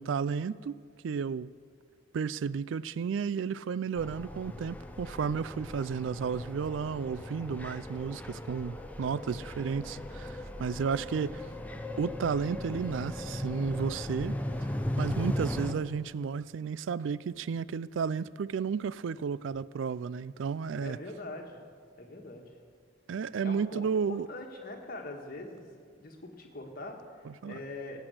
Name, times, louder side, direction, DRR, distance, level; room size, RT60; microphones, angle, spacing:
voice 1, 0.0-1.5 2.1-11.5 12.0-14.7 15.0-21.0 23.1-24.3 27.3-27.6, right 6 dB, 75° right, 18 dB, 0.3 m, -33 dB
sound 1, 4.0-15.7, left 1 dB, 10° left, 0.7 m, -37 dB
voice 2, 20.8-21.6 22.0-22.4 23.4-25.7 26.0-28.1, left 2 dB, 50° left, 2 dB, 1.6 m, -43 dB
18.0 x 6.2 x 7.9 m, 2.1 s
head